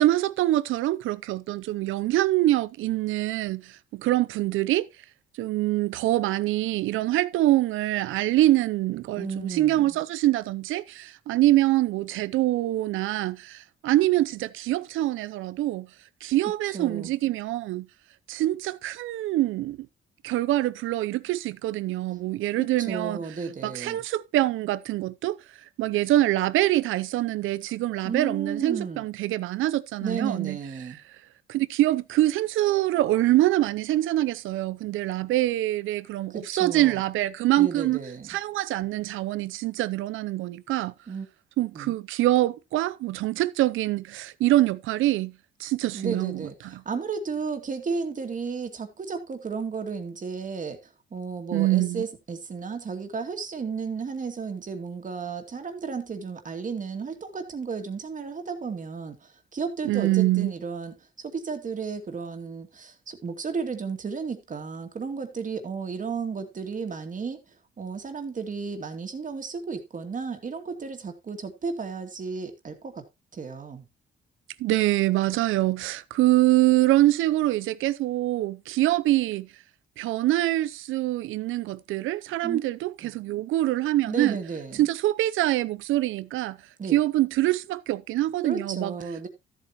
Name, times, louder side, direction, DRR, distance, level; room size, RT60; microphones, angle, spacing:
voice 1, 0.0-4.9 5.4-15.9 16.2-17.9 18.3-19.8 20.2-23.2 23.6-25.4 25.8-30.6 31.5-38.0 38.3-40.9 41.6-45.3 45.6-46.5 51.5-52.0 59.8-60.5 74.6-79.5 80.0-84.4 84.8-86.6 86.9-88.9, right 15 dB, 85° right, 0.6 m, -24 dB
voice 2, 9.2-9.9 16.7-17.1 22.6-24.0 28.0-29.0 30.0-31.0 36.3-37.0 37.6-38.3 41.1-41.3 41.7-41.9 45.9-50.8 51.1-60.9 61.2-67.4 67.8-73.0 73.3-73.8 82.4-82.6 83.0-83.1 84.1-84.9 86.8-87.0 88.4-89.3, right 5 dB, 40° right, 2.4 m, -33 dB
13.5 x 8.2 x 3.0 m
cardioid pair, 90°, 20 cm